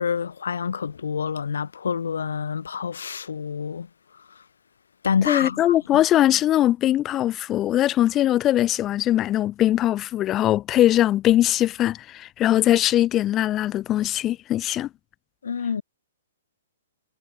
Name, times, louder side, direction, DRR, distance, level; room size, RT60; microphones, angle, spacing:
voice 1, 0.0-3.9 5.0-6.0 15.4-15.8, left 6 dB, 80° left, 6.1 m, -27 dB
voice 2, 5.2-14.9, left 13 dB, 25° left, 6.9 m, -21 dB
hypercardioid pair, 135°, 0 cm